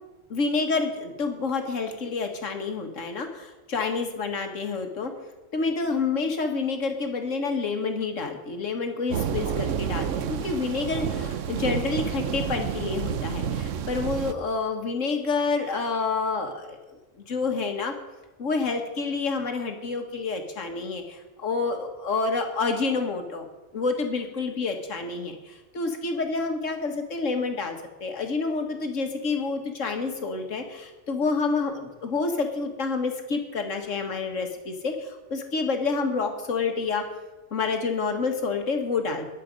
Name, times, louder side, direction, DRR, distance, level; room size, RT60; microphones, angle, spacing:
voice 1, 0.3-5.1 5.5-17.0 17.3-17.9 18.4-23.4 23.7-37.0 37.5-39.2, left 4 dB, 70° left, 5 dB, 1.9 m, -28 dB
sound 1, 9.1-14.3, right 8 dB, 70° right, 1.1 m, -29 dB
21.0 x 7.6 x 5.2 m, 1.1 s
omnidirectional pair, 1.3 m